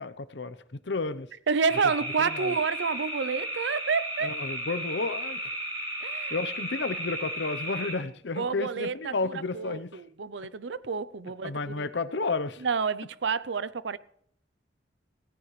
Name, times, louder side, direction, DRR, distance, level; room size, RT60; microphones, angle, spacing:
voice 1, 0.0-1.3 2.2-2.6 4.2-5.6 6.3-10.0 11.4-12.7, left 3 dB, 75° left, 0.8 m, -32 dB
voice 2, 1.5-4.3 6.0-6.4 8.4-11.9 12.6-14.0, right 5 dB, 80° right, 0.6 m, -29 dB
sound 1, 1.7-7.9, right 1 dB, 30° right, 5.3 m, -34 dB
17.5 x 14.5 x 3.2 m
head